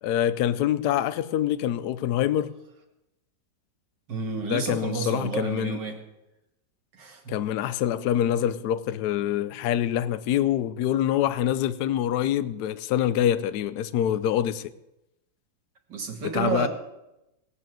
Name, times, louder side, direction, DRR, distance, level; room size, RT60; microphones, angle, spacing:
voice 1, 0.0-2.6 4.4-5.8 7.3-14.7 16.3-16.7, left 11 dB, 65° left, 1.1 m, -25 dB
voice 2, 4.1-6.0 6.9-7.3 15.9-16.7, right 5 dB, 65° right, 2.5 m, -30 dB
19.0 x 7.5 x 7.6 m
omnidirectional pair, 2.1 m